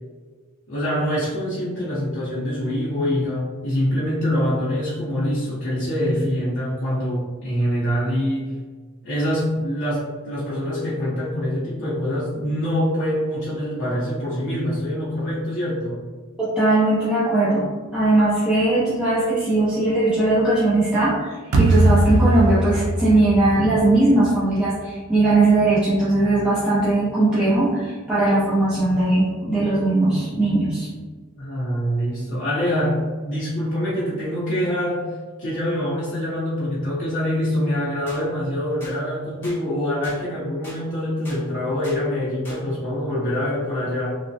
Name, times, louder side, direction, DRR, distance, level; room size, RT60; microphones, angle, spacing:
voice 1, 0.7-8.5 9.0-16.0 31.4-44.2, equal, 60° left, -8 dB, 0.6 m, -25 dB
voice 2, 16.4-30.9, right 2 dB, 5° right, -11 dB, 0.5 m, -19 dB
sound 1, 21.5-24.6, right 1 dB, 80° right, 0.5 m, -20 dB
sound 2, 38.1-38.2 38.8-39.0 39.4-39.6 40.0-40.2 40.6-40.8 41.2-41.4 41.8-42.0 42.4-42.6, equal, 10° left, 0.8 m, -39 dB
3.1 x 2.0 x 2.6 m, 1.4 s
head